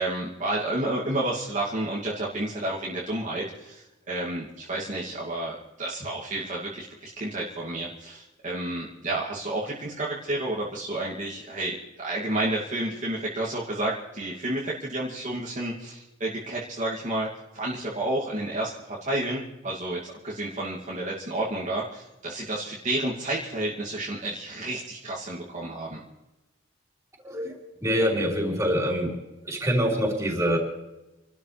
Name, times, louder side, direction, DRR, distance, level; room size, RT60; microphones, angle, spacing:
voice 1, 0.0-17.3 17.5-26.0, right 1 dB, 40° right, -6 dB, 2.7 m, -31 dB
voice 2, 27.2-29.2 29.4-30.6, equal, 15° right, -2 dB, 5.1 m, -25 dB
29.0 x 13.0 x 3.5 m, 0.99 s
head